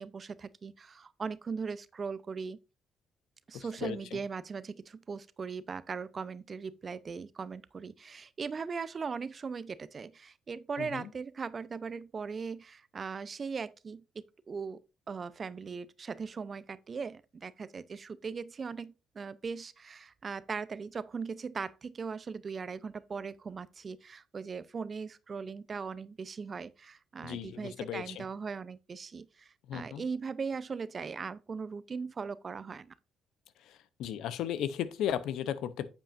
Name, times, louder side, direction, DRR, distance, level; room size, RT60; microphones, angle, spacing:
voice 1, 0.0-2.6 3.5-14.8 15.1-32.9, right 5 dB, 45° right, 0.6 m, -39 dB
voice 2, 3.5-4.2 10.8-11.1 27.2-28.2 29.7-30.0 33.6-35.9, left 10 dB, 75° left, 0.7 m, -36 dB
8.8 x 7.5 x 2.6 m
hypercardioid pair, 55°, 0 cm